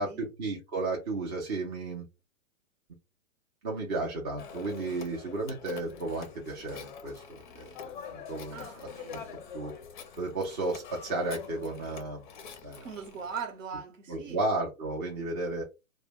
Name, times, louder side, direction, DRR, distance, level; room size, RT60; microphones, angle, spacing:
voice 1, 0.0-2.0 3.6-7.7 8.1-9.2 9.5-9.7 10.2-12.2 12.6-12.9 14.1-15.6, right 2 dB, 20° right, 0.5 m, -33 dB
Telephone, 4.4-13.5, left 7 dB, 40° left, 0.5 m, -45 dB
voice 2, 8.5-9.4 12.8-14.5, right 6 dB, 70° right, 1.0 m, -41 dB
2.1 x 2.1 x 3.4 m
hypercardioid pair, 150°, 40 cm